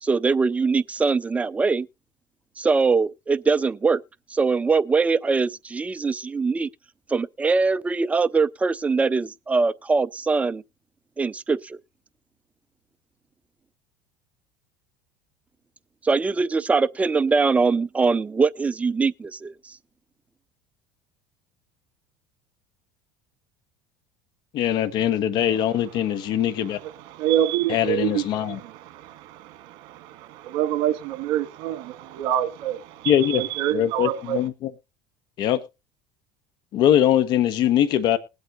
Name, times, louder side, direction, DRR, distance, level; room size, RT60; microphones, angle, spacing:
voice 1, 0.0-1.9 2.6-4.0 4.3-6.7 7.1-10.6 11.2-11.8 16.0-19.7, right 4 dB, 15° right, 0.5 m, -22 dB
voice 2, 24.5-26.8 27.7-28.6 33.1-33.4 33.7-34.5 35.4-35.6 36.7-38.2, left 10 dB, 55° left, 1.3 m, -21 dB
voice 3, 25.5-34.5, right 12 dB, 65° right, 1.9 m, -28 dB
20.5 x 8.2 x 2.7 m
supercardioid pair, 115°, 9 cm